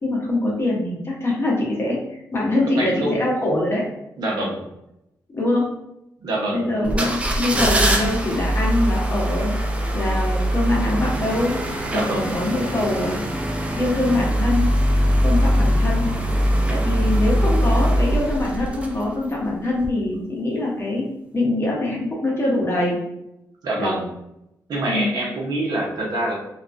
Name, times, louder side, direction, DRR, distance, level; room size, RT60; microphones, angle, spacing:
voice 1, 0.0-3.9 5.3-5.7 6.5-9.5 9.9-13.3 13.8-14.7 15.2-16.1 16.7-23.0 23.8-24.0 24.8-25.1, left 2 dB, 35° left, -3 dB, 0.9 m, -23 dB
voice 2, 2.8-3.1 4.2-4.6 6.2-7.1 11.9-12.3 23.6-24.1 24.7-26.4, right 1 dB, 70° right, -2 dB, 0.7 m, -25 dB
sound 1, 6.8-19.3 19.8-19.9, equal, 15° right, 0.4 m, -21 dB
2.3 x 2.2 x 2.5 m, 0.85 s
cardioid pair, 80°, 7 cm